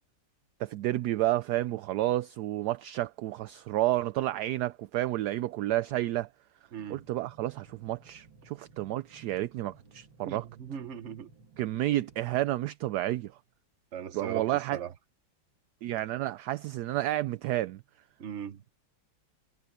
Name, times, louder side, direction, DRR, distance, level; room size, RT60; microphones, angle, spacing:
voice 1, 0.6-6.3 6.9-10.4 11.6-13.4 14.1-14.8 15.8-17.8, right 15 dB, 75° right, 1.0 m, -30 dB
voice 2, 6.7-7.0 10.2-11.3 13.9-14.9 18.2-18.6, right 8 dB, 45° right, 1.2 m, -39 dB
sound 1, 6.7-12.4, right 4 dB, 90° right, 3.0 m, -57 dB
omnidirectional pair, 2.1 m